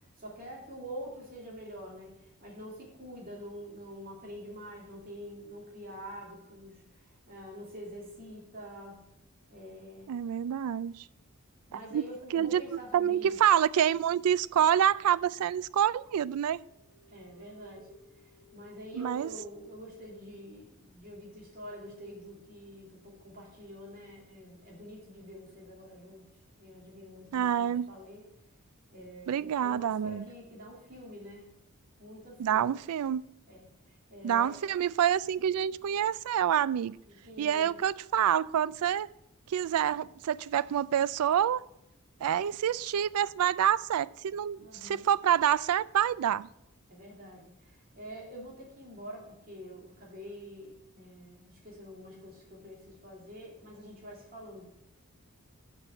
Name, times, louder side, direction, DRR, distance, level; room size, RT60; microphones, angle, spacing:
voice 1, 0.2-9.0 9.5-10.1 11.7-13.4 17.1-17.9 18.2-26.3 26.6-28.2 28.9-31.5 32.0-32.7 33.5-34.6 37.0-37.8 44.6-45.1 46.9-54.7, equal, 40° right, 2.7 m, -46 dB
voice 2, 10.1-11.1 11.7-12.0 12.3-16.6 18.9-19.3 27.3-27.9 29.3-30.3 32.4-33.2 34.2-37.0 37.4-39.1 39.5-41.6 42.2-46.5, right 9 dB, 85° right, 0.3 m, -27 dB
sound 1, 16.5-20.2, right 1 dB, 25° right, 1.1 m, -57 dB
7.2 x 5.5 x 6.7 m
head